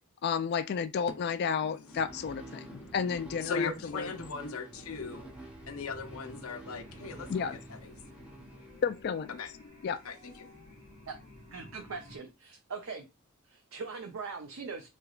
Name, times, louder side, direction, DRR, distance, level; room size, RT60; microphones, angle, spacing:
voice 1, 0.2-4.1 7.3-7.6 8.8-9.4 9.8-10.0, left 6 dB, 50° left, 0.3 m, -32 dB
voice 2, 1.6-8.8 9.3-11.1, left 4 dB, 75° left, 0.7 m, -41 dB
sound 1, 1.8-9.3, right 2 dB, 5° right, 0.6 m, -50 dB
sound 2, 4.7-12.2, left 1 dB, 40° right, 1.7 m, -53 dB
voice 3, 11.5-13.1 13.4-14.9, right 4 dB, 70° right, 0.5 m, -41 dB
3.7 x 3.3 x 2.4 m
head